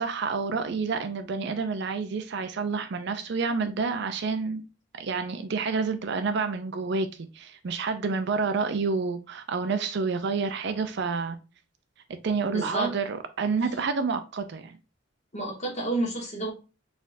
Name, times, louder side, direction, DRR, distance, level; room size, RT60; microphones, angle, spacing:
voice 1, 0.0-4.6 5.0-7.1 7.3-11.4 12.2-14.7, right 4 dB, 55° right, 0.4 m, -28 dB
voice 2, 12.5-12.9 15.3-16.5, right 2 dB, 35° left, 1.4 m, -30 dB
4.3 x 3.4 x 2.5 m
head